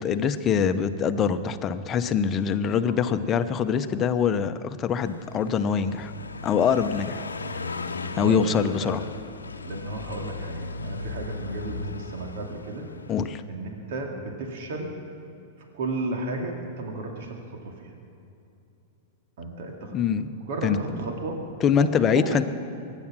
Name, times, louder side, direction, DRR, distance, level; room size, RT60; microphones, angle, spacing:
voice 1, 0.0-6.1 6.4-7.2 8.2-9.0 13.1-13.4 19.9-20.3 20.6-20.8 21.6-22.4, left 7 dB, 30° left, 10 dB, 0.9 m, -24 dB
Car passing by, 5.0-13.4, left 3 dB, 85° left, 0.8 m, -37 dB
voice 2, 8.1-8.9 9.6-12.9 13.5-14.9 15.7-17.9 19.4-20.0 20.5-21.4 21.7-22.5, right 2 dB, 60° right, 2 dB, 2.4 m, -33 dB
23.5 x 9.9 x 6.2 m, 2.7 s
hypercardioid pair, 100°, 0 cm